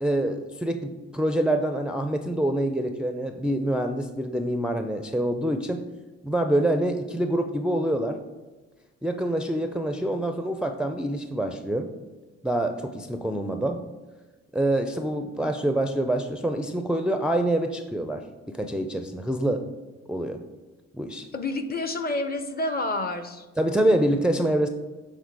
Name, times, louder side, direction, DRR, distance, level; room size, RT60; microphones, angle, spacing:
voice 1, 0.0-5.8 6.2-8.2 9.0-11.9 12.4-13.8 14.5-19.6 20.1-20.4 20.9-21.3 23.6-24.7, right 1 dB, 5° right, 6 dB, 0.4 m, -26 dB
voice 2, 21.3-23.5, left 2 dB, 30° left, 9 dB, 0.7 m, -29 dB
7.3 x 3.6 x 4.7 m, 1.2 s
cardioid pair, 90°, 30 cm